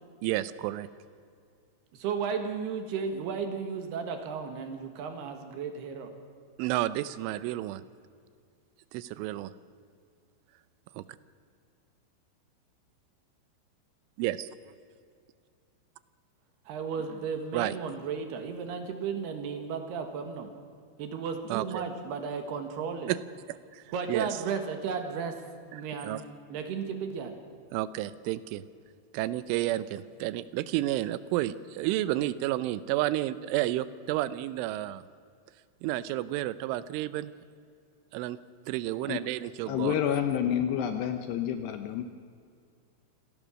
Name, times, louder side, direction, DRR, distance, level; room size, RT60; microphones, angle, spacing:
voice 1, 0.2-0.9 6.6-7.8 8.9-9.5 11.0-11.1 14.2-14.5 17.5-17.8 21.5-21.8 23.1-23.2 23.5-23.8 24.1-24.3 25.7-26.2 27.7-28.6 29.1-35.0 35.8-37.3 38.1-38.4 38.7-40.0, right 15 dB, 85° right, 15 dB, 3.1 m, -31 dB
voice 2, 1.9-6.1 16.7-20.5 21.0-23.1 23.9-25.3 25.7-26.2 26.5-27.4, right 6 dB, 65° right, 6 dB, 3.2 m, -34 dB
voice 3, 39.7-42.1, left 9 dB, 75° left, 7 dB, 2.6 m, -29 dB
26.0 x 18.0 x 6.3 m, 2.3 s
omnidirectional pair, 5.6 m